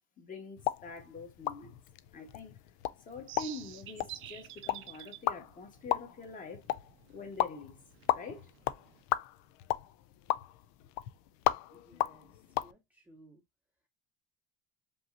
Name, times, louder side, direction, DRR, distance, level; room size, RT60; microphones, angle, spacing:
voice 1, 0.2-1.8 2.1-2.6 3.0-6.6 7.1-7.7 8.1-8.5, left 3 dB, 25° left, 1.4 m, -45 dB
sound 1, 0.6-12.7, left 14 dB, 65° left, 0.5 m, -36 dB
sound 2, 3.1-9.0, right 14 dB, 40° right, 0.5 m, -50 dB
voice 2, 11.7-13.4, right 1 dB, 5° right, 0.8 m, -60 dB
5.3 x 2.9 x 2.6 m
cardioid pair, 155°, 31 cm